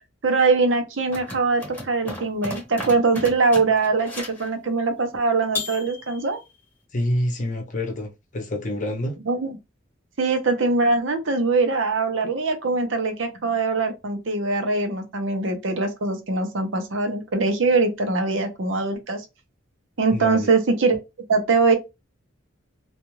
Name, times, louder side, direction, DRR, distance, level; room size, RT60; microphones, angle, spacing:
voice 1, 0.2-6.4 9.3-9.6 10.2-19.2 20.0-21.0 21.3-21.8, right 3 dB, 75° right, 0.7 m, -22 dB
sound 1, 1.1-4.5 5.5-6.4, left 2 dB, 10° left, 0.9 m, -34 dB
voice 2, 6.9-9.2 20.1-20.5, left 1 dB, 40° left, 0.7 m, -27 dB
2.5 x 2.3 x 3.0 m
head